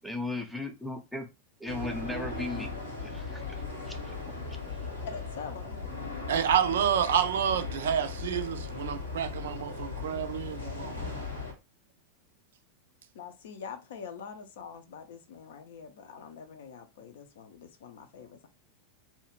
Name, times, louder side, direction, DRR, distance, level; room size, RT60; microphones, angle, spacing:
voice 1, 0.0-1.3 1.6-2.8 3.0-4.2 4.5-4.6, left 2 dB, ahead, 0.6 m, -37 dB
sound 1, 1.7-11.5, left 4 dB, 90° left, 1.1 m, -38 dB
voice 2, 4.8-5.9 13.1-18.5, left 6 dB, 60° left, 0.5 m, -45 dB
voice 3, 6.3-11.2, right 9 dB, 65° right, 0.3 m, -29 dB
2.7 x 2.3 x 2.9 m
figure-of-eight pair, 90°, 0 cm